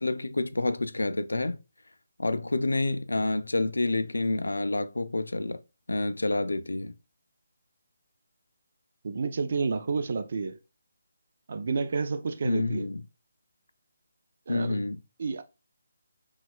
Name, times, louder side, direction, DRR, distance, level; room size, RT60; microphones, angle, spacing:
voice 1, 0.0-1.6 2.2-5.6 5.9-6.9 12.4-13.0 14.5-15.0, left 2 dB, 90° left, 0.3 m, -28 dB
voice 2, 9.0-10.6 11.5-12.9 14.5-14.8 15.2-15.4, right 4 dB, 50° right, 0.4 m, -30 dB
4.1 x 2.3 x 2.2 m
figure-of-eight pair, 160°, 0 cm